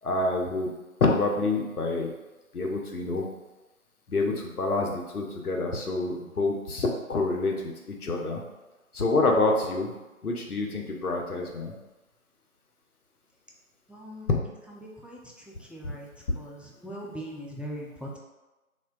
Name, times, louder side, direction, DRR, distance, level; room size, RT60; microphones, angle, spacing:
voice 1, 0.0-0.7 1.0-2.1 2.5-3.3 4.1-8.4 8.9-9.9 10.2-11.7, left 3 dB, 90° left, 1 dB, 0.7 m, -27 dB
voice 2, 13.9-14.3 15.0-15.2 15.7-16.1 16.4-16.6 16.8-18.2, equal, 5° right, -2 dB, 0.3 m, -39 dB
3.4 x 2.2 x 2.3 m, 1.1 s
figure-of-eight pair, 180°, 43 cm